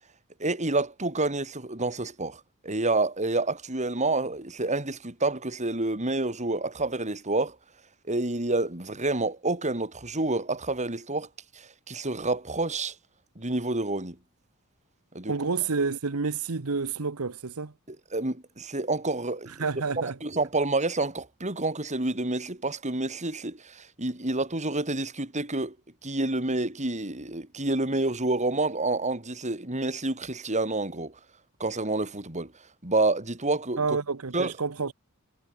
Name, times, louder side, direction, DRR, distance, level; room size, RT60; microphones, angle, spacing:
voice 1, 0.4-7.6 8.1-11.3 11.5-12.9 13.4-14.2 15.1-15.4 17.9-19.7 20.2-25.8 26.0-31.2 31.6-32.5 32.8-34.0 34.3-34.5, right 2 dB, 35° right, 4.4 m, -28 dB
voice 2, 15.3-17.7 19.6-20.1 33.8-34.9, right 4 dB, 80° right, 1.0 m, -29 dB
head